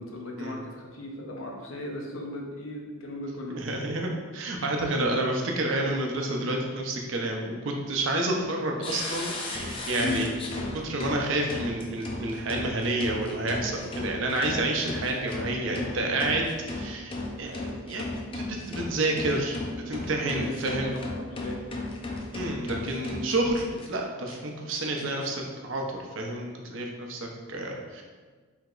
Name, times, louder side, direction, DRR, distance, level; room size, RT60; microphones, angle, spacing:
voice 1, 0.0-3.6 10.0-10.2 20.2-21.6, left 2 dB, 90° left, 0 dB, 0.7 m, -37 dB
voice 2, 3.5-10.3 10.7-18.0 18.3-19.6 19.9-20.9 22.3-28.0, right 2 dB, 70° right, 1 dB, 0.6 m, -29 dB
sound 1, 8.8-23.9 24.3-24.4 24.7-25.3, left 2 dB, 25° left, 0.4 m, -36 dB
4.7 x 3.5 x 2.4 m, 1.4 s
head